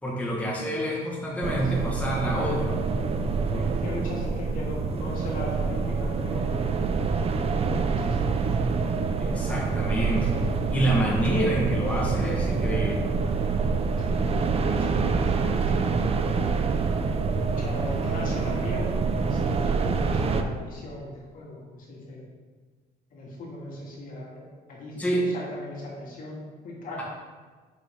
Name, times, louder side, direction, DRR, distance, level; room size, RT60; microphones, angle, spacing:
voice 1, 0.0-2.8 9.2-10.4 10.7-13.1 25.0-25.2, right 1 dB, 10° left, -4 dB, 1.5 m, -27 dB
sound 1, 1.4-20.4, right 4 dB, 35° right, 0.6 m, -26 dB
voice 2, 3.5-6.9 7.7-8.6 14.1-14.3 14.6-16.0 17.4-18.9 19.2-22.2 23.1-26.4 26.6-27.0, left 1 dB, 55° left, -4 dB, 2.4 m, -39 dB
6.6 x 6.4 x 3.7 m, 1.4 s
cardioid pair, 110°, 17 cm